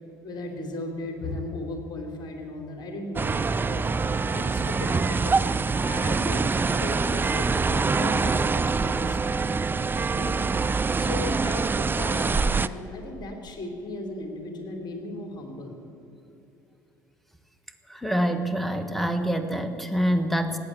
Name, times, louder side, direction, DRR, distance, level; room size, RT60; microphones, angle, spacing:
voice 1, 0.2-3.9 4.3-5.4 5.8-9.5 10.1-10.4 10.9-15.8, left 2 dB, 45° left, 4 dB, 3.3 m, -36 dB
sound 1, 3.2-12.7, right 4 dB, 20° right, 0.5 m, -25 dB
voice 2, 17.9-20.6, equal, ahead, 9 dB, 1.5 m, -26 dB
18.0 x 8.5 x 9.1 m, 2.8 s
hypercardioid pair, 60°, 10 cm